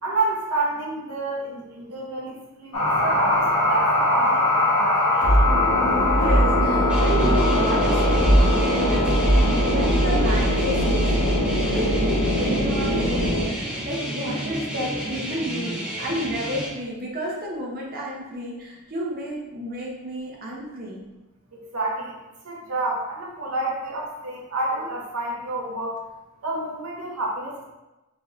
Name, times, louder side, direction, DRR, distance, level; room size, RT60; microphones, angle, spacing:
voice 1, 0.0-5.5 21.5-22.2 22.4-26.0 26.4-27.6, right 2 dB, 90° right, -2 dB, 0.8 m, -29 dB
sound 1, 2.7-13.5, equal, 80° left, 1.1 m, -20 dB
voice 2, 5.9-11.1 11.7-13.3 13.6-21.0, equal, 45° right, -4 dB, 0.8 m, -31 dB
sound 2, 6.9-16.7, right 1 dB, 5° right, 0.8 m, -31 dB
3.9 x 3.8 x 2.5 m, 1.0 s
head